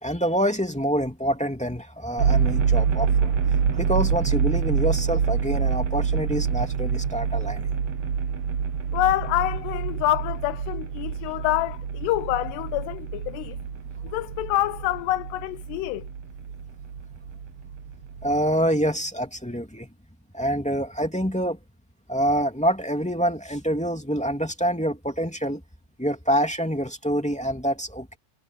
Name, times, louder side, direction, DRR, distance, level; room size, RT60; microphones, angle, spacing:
voice 1, 0.0-3.3 3.7-7.7 18.2-19.9 20.3-21.6 22.1-25.6 26.0-28.2, equal, 5° left, 1.1 m, -26 dB
sound 1, 2.2-18.5, right 6 dB, 70° right, 1.4 m, -26 dB
voice 2, 8.9-13.6 14.1-16.0, left 16 dB, 85° left, 2.7 m, -26 dB
omnidirectional pair, 4.8 m